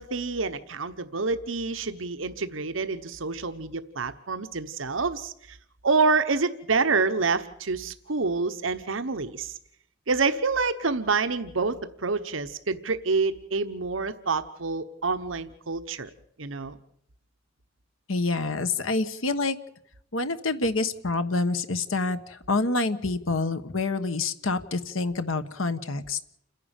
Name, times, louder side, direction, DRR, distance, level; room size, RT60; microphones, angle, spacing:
voice 1, 0.0-5.6 5.8-9.5 10.1-16.1 16.4-16.8, right 4 dB, 70° right, 10 dB, 1.1 m, -27 dB
voice 2, 18.1-19.6 20.1-26.2, left 3 dB, 85° left, 10 dB, 1.3 m, -27 dB
29.0 x 11.0 x 9.0 m, 0.73 s
head